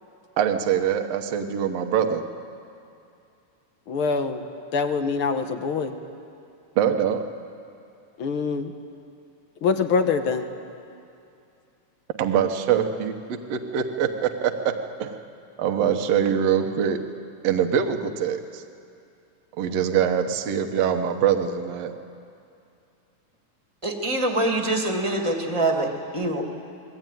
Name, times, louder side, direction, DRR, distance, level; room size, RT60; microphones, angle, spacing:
voice 1, 0.4-2.2 6.8-7.2 12.2-13.1 13.5-14.5 15.0-15.1 15.6-17.0 17.4-18.6 19.6-21.9, right 8 dB, 60° right, 6 dB, 2.1 m, -23 dB
voice 2, 3.9-4.4 4.7-5.9 8.2-8.7 9.6-10.5, left 5 dB, 55° left, 7 dB, 1.6 m, -24 dB
voice 3, 23.8-26.4, right 2 dB, 10° right, 2 dB, 1.9 m, -24 dB
29.5 x 21.0 x 9.3 m, 2.6 s
omnidirectional pair, 3.7 m